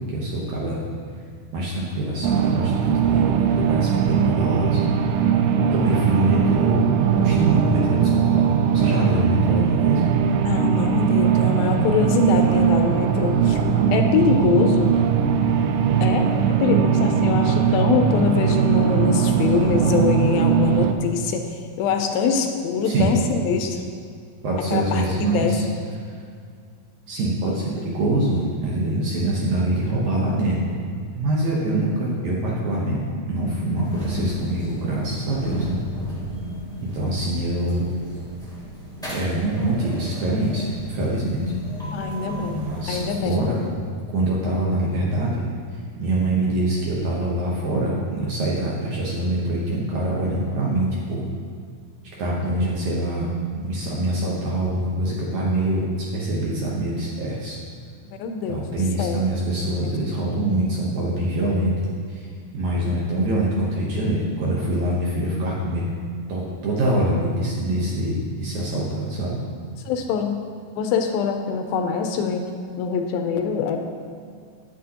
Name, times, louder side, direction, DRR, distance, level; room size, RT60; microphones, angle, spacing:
voice 1, 0.1-0.8 1.5-5.3 5.7-6.9 7.1-10.0 22.8-23.1 24.4-25.6 27.1-30.8 31.1-33.0 33.3-35.8 36.9-37.9 39.1-41.4 42.4-43.0 43.3-43.6 44.1-45.5 45.7-51.2 52.2-53.3 53.5-57.6 58.5-61.7 62.1-62.3 62.5-65.8 66.3-69.4, right 1 dB, 70° right, -5 dB, 1.9 m, -24 dB
sound 1, 2.2-20.9, right 7 dB, 85° right, 2.5 m, -20 dB
voice 2, 10.4-13.6 13.9-14.9 16.0-16.3 16.6-23.8 24.7-25.6 41.9-42.6 42.9-43.4 58.2-58.6 59.0-59.3 69.9-70.4 70.8-72.4 72.8-73.8, left 5 dB, 80° left, 5 dB, 2.3 m, -23 dB
sound 2, 33.8-43.9, left 1 dB, 5° left, 0.3 m, -34 dB
9.7 x 9.0 x 2.9 m, 2.2 s
omnidirectional pair, 4.4 m